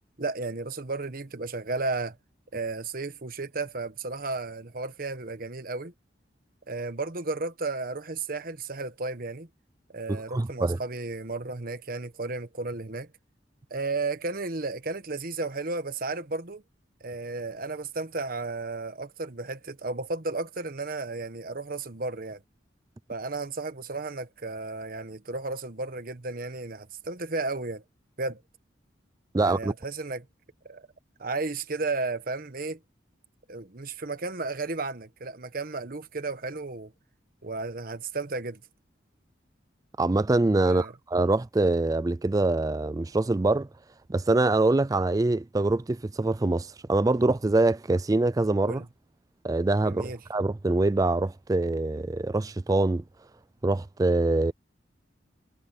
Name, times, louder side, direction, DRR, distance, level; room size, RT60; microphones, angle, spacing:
voice 1, 0.2-2.2 2.5-5.9 6.7-9.5 9.9-13.1 13.7-16.6 17.0-22.4 23.1-27.8 28.2-28.4 29.4-30.3 30.6-30.9 31.2-32.8 33.5-36.9 37.4-38.6 40.7-40.9 48.6-48.9 49.8-50.2, right 3 dB, 50° right, 1.3 m, -33 dB
voice 2, 10.1-10.8 29.3-29.7 40.0-43.7 44.1-48.8 49.4-53.0 53.6-54.5, right 2 dB, 20° right, 0.4 m, -24 dB
head